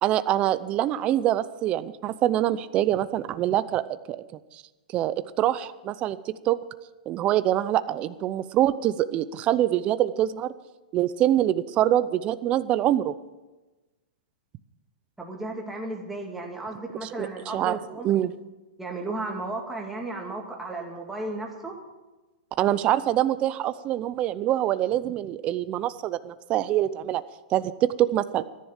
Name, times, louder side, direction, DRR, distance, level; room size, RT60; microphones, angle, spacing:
voice 1, 0.0-4.2 4.5-4.6 4.9-6.6 7.1-10.5 10.9-13.1 17.0-17.8 18.0-18.3 22.6-27.2 27.5-28.4, right 12 dB, 25° right, 14 dB, 0.6 m, -25 dB
voice 2, 15.2-18.1 18.8-21.8, right 2 dB, 5° right, -1 dB, 2.2 m, -34 dB
14.0 x 10.5 x 7.3 m, 1.1 s
hypercardioid pair, 155°, 5 cm